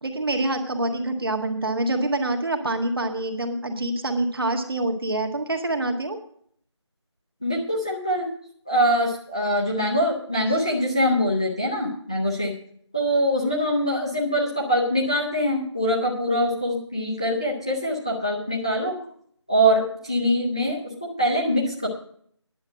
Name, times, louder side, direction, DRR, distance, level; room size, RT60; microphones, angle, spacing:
voice 1, 0.0-6.2, right 2 dB, 50° right, 5 dB, 1.6 m, -26 dB
voice 2, 7.4-8.3 8.7-12.5 12.9-19.0 19.5-21.9, equal, 10° left, -4 dB, 0.6 m, -23 dB
10.5 x 7.5 x 7.5 m, 0.62 s
figure-of-eight pair, 170°, 15 cm